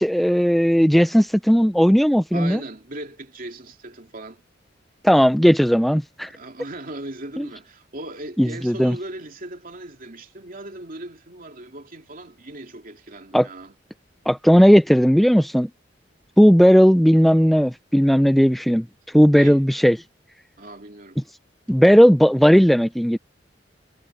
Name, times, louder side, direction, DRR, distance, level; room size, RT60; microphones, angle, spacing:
voice 1, 0.0-2.6 5.0-6.3 7.4-7.5 8.4-9.0 13.3-13.5 14.3-15.7 16.4-18.9 19.1-20.0 21.7-23.2, equal, ahead, 0.3 m, -16 dB
voice 2, 2.3-4.4 6.2-13.7 19.3-19.6 20.6-21.2, right 2 dB, 50° right, 3.0 m, -38 dB
head